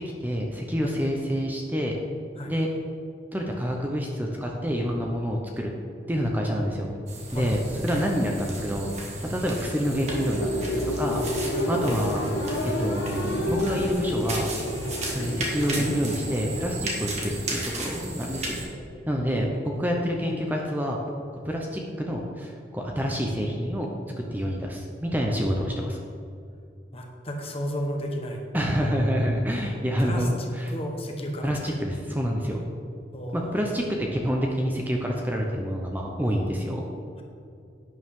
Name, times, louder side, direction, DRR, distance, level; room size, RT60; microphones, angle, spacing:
voice 1, 0.2-2.0 2.5-2.7 3.3-5.7 6.1-6.9 7.3-8.9 9.3-11.2 11.7-12.2 12.8-14.5 15.1-18.6 19.1-21.0 21.4-23.9 24.3-26.0 28.5-30.7 31.4-32.6 33.3-36.8, equal, 10° right, 0 dB, 0.8 m, -27 dB
sound 1, 7.1-18.6, right 1 dB, 35° right, 1.8 m, -35 dB
sound 2, 9.4-18.1, left 1 dB, 80° left, 1.4 m, -30 dB
voice 2, 18.5-18.9 26.9-28.4 30.0-31.8 33.1-33.6, equal, 30° left, 2 dB, 1.3 m, -34 dB
11.5 x 9.3 x 3.8 m, 2.5 s
head